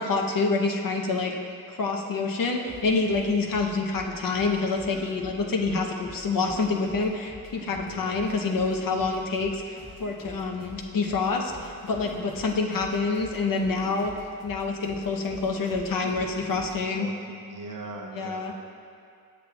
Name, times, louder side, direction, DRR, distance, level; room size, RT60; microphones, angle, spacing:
voice 1, 0.0-1.4 1.7-14.1 14.4-17.1 18.2-18.5, left 3 dB, 60° left, 2 dB, 0.7 m, -27 dB
sound 1, 2.7-16.8, equal, 5° left, 1.4 m, -47 dB
voice 2, 7.7-8.4 8.8-9.4 10.4-10.7 12.0-12.3 15.3-15.4 16.0-18.5, right 3 dB, 55° right, 1 dB, 0.8 m, -42 dB
8.2 x 5.9 x 2.3 m, 2.3 s
cardioid pair, 50°, 38 cm